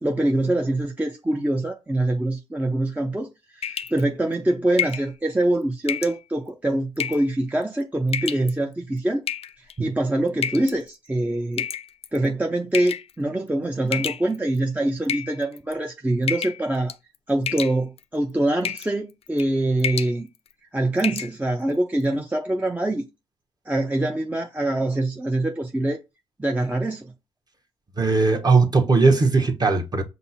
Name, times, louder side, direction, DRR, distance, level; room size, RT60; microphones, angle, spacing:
voice 1, 0.0-9.2 9.8-11.7 12.1-16.9 17.3-20.3 20.7-23.0 23.7-26.0 26.4-27.1, right 1 dB, 10° right, 0.6 m, -24 dB
sound 1, 3.6-4.0 4.8-5.1 5.9-6.2 7.0-7.3 8.1-8.5 9.3-9.7 10.4-10.8 11.6-12.2 12.7-13.1 13.9-14.6 15.1-15.7 16.3-16.6 16.9-17.2 17.5-18.0 18.6-18.9 19.3-19.5 19.8-20.1 20.5-20.6 21.0-21.3, left 9 dB, 45° left, 0.4 m, -29 dB
voice 2, 28.0-30.0, right 4 dB, 30° right, 1.0 m, -18 dB
5.3 x 2.0 x 4.2 m
hypercardioid pair, 50°, 14 cm